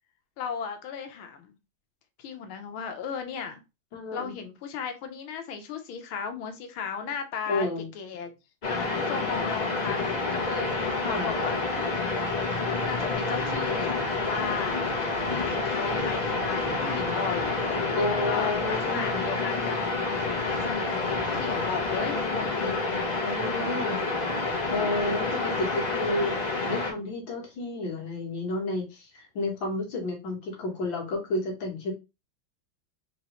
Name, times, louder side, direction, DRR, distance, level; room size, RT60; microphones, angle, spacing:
voice 1, 0.4-1.5 2.2-3.6 4.1-7.7 7.9-8.3 8.7-11.9 12.8-14.8 15.6-19.8 20.1-22.7 23.6-23.9 25.9-26.0, left 6 dB, 85° left, 1.6 m, -36 dB
voice 2, 3.9-4.3 7.5-7.9 11.0-11.3 18.0-19.2 22.6-22.8 23.2-24.0 24.7-31.9, left 2 dB, 70° left, 2.1 m, -31 dB
sound 1, 8.6-26.9, left 3 dB, 40° left, 0.6 m, -28 dB
4.4 x 3.1 x 2.9 m
omnidirectional pair, 2.2 m